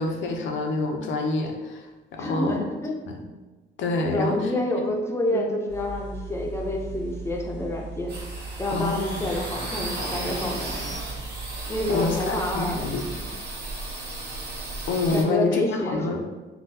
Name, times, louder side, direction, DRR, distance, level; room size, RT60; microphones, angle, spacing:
voice 1, 0.0-1.9 2.1-2.6 3.1-3.2 3.8-4.5 5.3-5.5 8.7-9.3 11.9-13.0 14.9-16.2, left 3 dB, 75° left, 2 dB, 0.6 m, -27 dB
voice 2, 2.2-3.0 4.0-8.2 8.6-10.9 11.7-12.9 15.1-16.2, left 1 dB, 15° left, -1 dB, 0.6 m, -28 dB
sound 1, 5.7-13.3, right 3 dB, 85° right, 1.4 m, -38 dB
sound 2, 8.1-15.2, right 2 dB, 55° right, 1.0 m, -35 dB
3.6 x 2.2 x 2.7 m, 1.2 s
cardioid pair, 90°, 20 cm